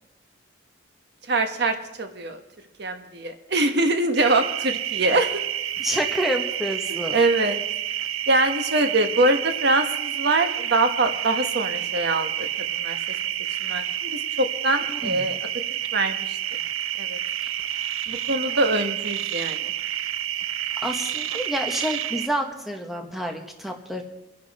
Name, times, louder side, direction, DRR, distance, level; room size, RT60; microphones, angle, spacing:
voice 1, 1.3-2.4 2.8-5.4 6.9-7.6 8.3-12.5 12.8-13.0 13.6-15.4 15.9-16.4 17.0-17.2 18.1-19.7, right 2 dB, 55° right, 6 dB, 1.2 m, -23 dB
sound 1, 4.2-22.3, right 11 dB, 90° right, 0.5 m, -29 dB
voice 2, 5.8-7.1 14.9-15.3 20.8-24.0, equal, ahead, 3 dB, 1.3 m, -28 dB
24.5 x 10.5 x 4.2 m, 0.94 s
head